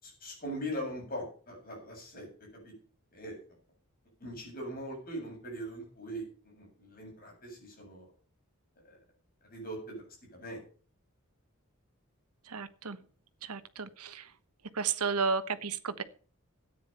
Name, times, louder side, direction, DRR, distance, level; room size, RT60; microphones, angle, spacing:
voice 1, 0.0-2.7 3.1-3.4 4.2-8.1 8.8-9.0 9.5-10.1 10.3-10.6, equal, 40° left, -1 dB, 7.9 m, -41 dB
voice 2, 12.5-13.0 13.4-14.3 14.7-16.0, right 5 dB, 90° right, 12 dB, 1.1 m, -33 dB
13.5 x 9.5 x 5.7 m, 0.42 s
head